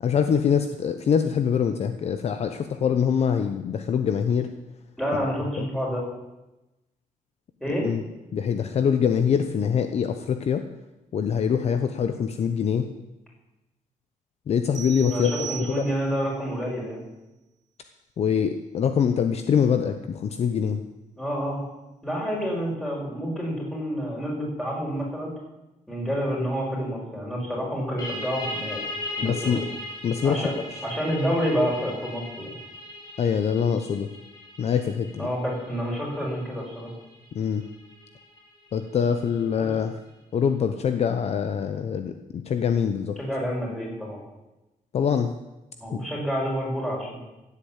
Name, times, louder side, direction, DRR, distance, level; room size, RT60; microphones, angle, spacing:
voice 1, 0.0-4.5 5.6-5.7 7.8-8.0 8.3-10.6 11.1-12.9 14.5-15.9 18.2-20.8 29.2-29.6 30.0-30.5 33.2-34.1 34.6-35.3 37.3-37.6 38.7-39.9 40.3-43.2 44.9-45.3 45.9-46.0, left 7 dB, 50° left, 8 dB, 0.8 m, -24 dB
voice 2, 5.0-6.0 7.6-7.9 15.1-17.0 21.2-21.6 22.0-25.3 25.9-28.8 29.2-29.7 30.2-30.5 30.8-32.5 35.2-36.9 39.6-39.7 43.2-44.2 45.8-47.2, equal, 5° left, -3 dB, 5.3 m, -28 dB
sound 1, 14.7-16.3, right 12 dB, 60° right, 1.2 m, -38 dB
sound 2, 28.0-39.3, left 2 dB, 30° left, 3.0 m, -38 dB
16.0 x 8.3 x 8.8 m, 0.99 s
wide cardioid pair, 175°, 14 cm